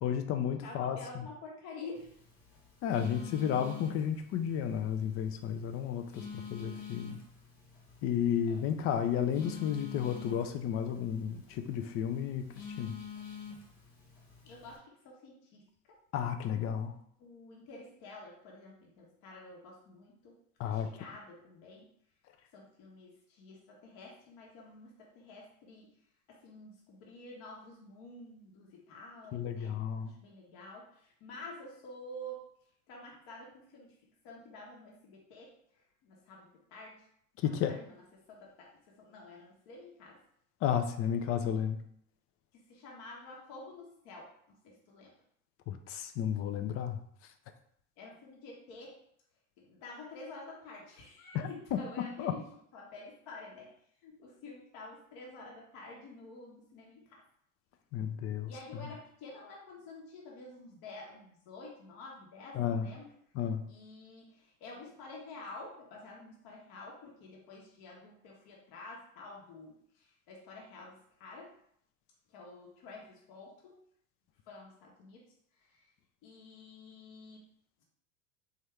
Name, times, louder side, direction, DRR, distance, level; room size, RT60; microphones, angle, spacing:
voice 1, 0.0-1.3 2.8-7.2 8.0-13.0 16.1-16.9 20.6-20.9 29.3-30.1 37.4-37.7 40.6-41.8 45.7-47.0 51.3-52.3 57.9-58.5 62.5-62.9 63.3-63.6, left 8 dB, 35° left, 8 dB, 0.4 m, -32 dB
voice 2, 0.6-2.2 8.5-8.9 14.4-16.0 17.2-20.4 20.6-21.9 22.5-25.9 26.3-29.7 30.1-32.4 32.9-37.0 37.4-38.0 38.3-40.2 42.5-44.3 44.6-45.1 48.0-49.0 49.6-52.5 52.7-53.7 54.0-57.2 58.5-63.1 63.7-71.5 72.3-73.8 74.5-75.2 75.6-75.9 76.2-77.4, left 2 dB, 55° left, -2 dB, 1.1 m, -49 dB
Telephone, 1.9-14.8, left 6 dB, 70° left, 1.3 m, -48 dB
3.5 x 2.8 x 3.3 m, 0.68 s
hypercardioid pair, 75°, 44 cm